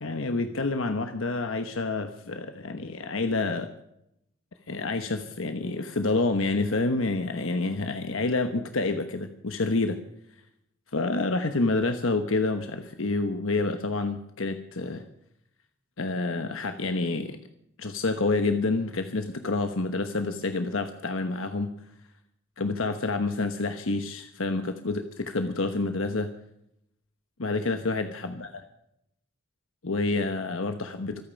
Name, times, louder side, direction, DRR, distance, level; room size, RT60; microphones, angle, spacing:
voice 1, 0.0-3.7 4.7-10.0 10.9-15.0 16.0-17.4 17.8-21.7 22.6-26.3 27.4-28.5 29.8-31.2, left 3 dB, 85° left, 7 dB, 1.1 m, -28 dB
25.5 x 9.1 x 5.3 m, 0.77 s
head